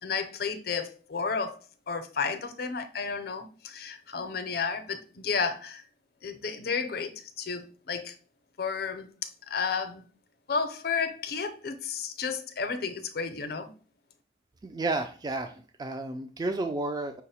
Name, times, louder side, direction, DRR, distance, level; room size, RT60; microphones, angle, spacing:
voice 1, 0.0-5.8 6.2-8.2 8.6-9.1 9.5-10.0 10.5-13.7, left 5 dB, 60° left, 0.5 m, -32 dB
voice 2, 14.6-17.2, right 2 dB, 20° right, 0.3 m, -32 dB
5.7 x 2.0 x 4.1 m
head